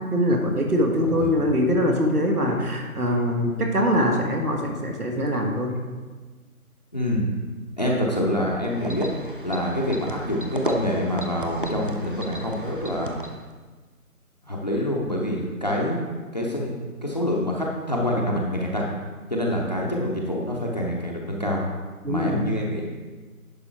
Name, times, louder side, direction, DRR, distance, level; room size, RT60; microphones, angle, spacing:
voice 1, 0.0-5.7 22.0-22.5, equal, 85° right, 2 dB, 1.9 m, -23 dB
voice 2, 1.0-1.5 6.9-7.3 7.8-9.1 9.4-13.2 14.4-16.0 16.3-16.8 17.0-18.9 19.3-21.6 22.1-22.8, left 1 dB, 30° left, -2 dB, 0.7 m, -26 dB
sound 1, 8.6-13.5, equal, 35° right, 0.5 m, -34 dB
10.0 x 5.4 x 4.5 m, 1.4 s
figure-of-eight pair, 160°, 44 cm